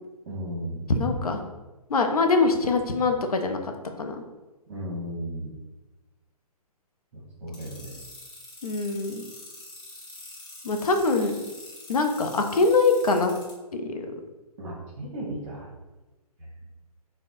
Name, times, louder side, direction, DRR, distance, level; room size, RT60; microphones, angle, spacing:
voice 1, 0.3-0.8 4.7-5.6 7.1-8.0 14.6-15.7 16.4-16.5, right 1 dB, 50° right, -6 dB, 0.9 m, -35 dB
voice 2, 0.9-1.4 1.9-3.6 4.0-4.2 8.6-9.2 10.6-11.3 11.9-13.3 13.7-14.1, left 3 dB, 70° left, 5 dB, 0.6 m, -23 dB
sound 1, 7.5-13.5, left 2 dB, 20° left, 1.1 m, -44 dB
4.3 x 2.2 x 2.6 m, 1.1 s
figure-of-eight pair, 125°, 20 cm